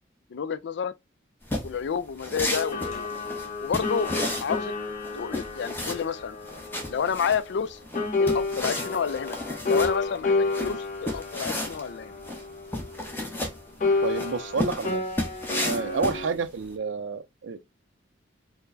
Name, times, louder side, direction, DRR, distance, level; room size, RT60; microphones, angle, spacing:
voice 1, 0.3-0.9 1.6-3.1 3.6-4.1 4.4-4.7 5.1-6.4 6.9-7.8 8.2-9.4 9.7-12.2, left 6 dB, 65° left, 0.4 m, -30 dB
sound 1, 1.4-16.7, left 1 dB, 10° left, 0.9 m, -33 dB
sound 2, 2.5-7.7 7.9-13.4 13.8-16.3, left 3 dB, 40° left, 0.7 m, -30 dB
voice 2, 14.0-15.0 15.6-17.7, right 4 dB, 70° right, 0.4 m, -30 dB
4.5 x 2.1 x 2.5 m
head